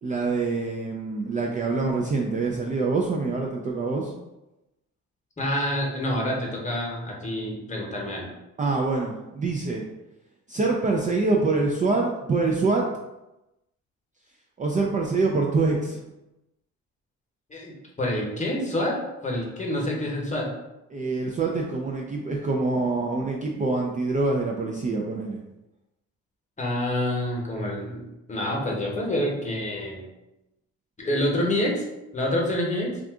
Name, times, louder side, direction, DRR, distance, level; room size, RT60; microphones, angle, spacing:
voice 1, 0.0-4.1 8.6-9.9 10.5-12.8 14.6-16.0 20.9-25.4, right 3 dB, 25° right, -1 dB, 0.4 m, -25 dB
voice 2, 5.4-8.3 17.5-17.7 18.0-20.5 26.6-30.0 31.0-31.8 32.1-33.0, left 1 dB, 25° left, -2 dB, 0.9 m, -27 dB
2.6 x 2.4 x 3.5 m, 0.96 s
cardioid pair, 90°, 30 cm